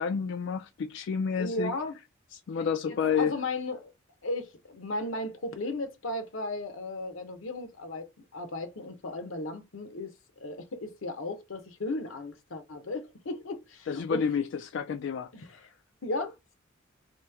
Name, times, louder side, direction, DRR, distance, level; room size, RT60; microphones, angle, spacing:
voice 1, 0.0-1.7 2.5-3.3 13.9-15.6, left 6 dB, 60° left, 0.3 m, -30 dB
voice 2, 1.4-2.0 2.8-3.9 4.2-10.1 10.4-14.2 15.3-15.7 16.0-16.6, left 2 dB, 80° left, 0.8 m, -35 dB
3.1 x 2.7 x 3.4 m
head